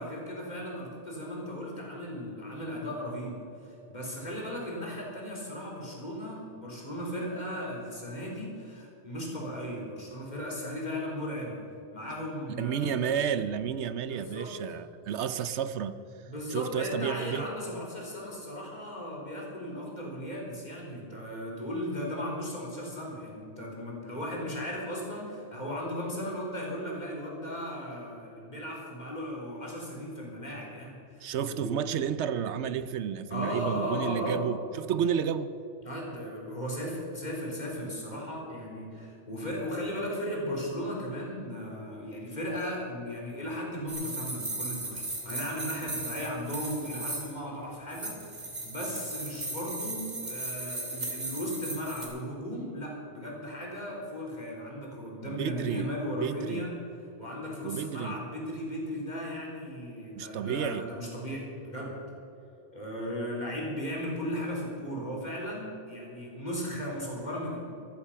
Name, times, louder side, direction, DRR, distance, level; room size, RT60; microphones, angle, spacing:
voice 1, 0.0-3.3 3.6-11.6 11.9-13.2 14.1-14.5 16.3-31.7 33.3-34.5 35.8-56.7 57.0-62.0 62.7-67.6, equal, 40° left, 4.0 m, -36 dB
voice 2, 12.6-16.0 16.5-17.5 31.2-35.6 55.2-55.9 56.2-56.7 57.6-58.2 60.1-60.8, right 8 dB, 80° right, 0.9 m, -31 dB
sound 1, 43.9-47.4 47.9-52.1, right 2 dB, 40° right, 2.8 m, -37 dB
14.0 x 13.5 x 5.7 m
omnidirectional pair, 1.2 m